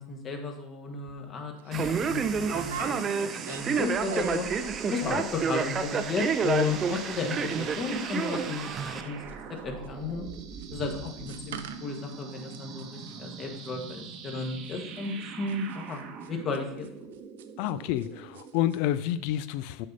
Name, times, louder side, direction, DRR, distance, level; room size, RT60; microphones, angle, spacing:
voice 1, 0.0-4.4 4.8-9.2 9.6-10.2 10.7-16.9, left 4 dB, 35° left, 3 dB, 1.4 m, -34 dB
sound 1, 1.1-1.2 1.6-1.8 2.4-4.6 4.8-5.3 5.5-5.6 5.8-6.2 6.4-18.1 18.3-18.8 19.0-19.1, right 8 dB, 80° right, 0.5 m, -44 dB
Male speech man speaking, 1.7-9.0, right 6 dB, 30° right, 0.5 m, -30 dB
sound 2, 1.7-18.5, right 6 dB, 45° right, 0.9 m, -42 dB
voice 2, 17.6-19.9, left 12 dB, 65° left, 15 dB, 0.4 m, -29 dB
6.4 x 4.0 x 5.3 m, 0.80 s
hypercardioid pair, 100°, 0 cm